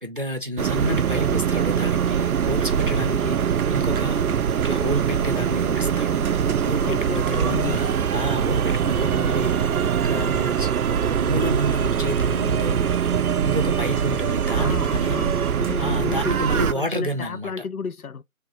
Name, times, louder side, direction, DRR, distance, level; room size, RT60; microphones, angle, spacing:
voice 1, 0.0-4.2 4.6-6.2 6.6-9.5 9.9-12.9 13.4-15.2 15.8-17.5, right 1 dB, 40° right, 0.6 m, -29 dB
sound 1, 0.6-16.7, right 7 dB, 90° right, 0.6 m, -23 dB
voice 2, 6.8-7.8 14.6-18.2, left 5 dB, 85° left, 0.7 m, -32 dB
3.5 x 2.5 x 4.0 m
figure-of-eight pair, 180°, 42 cm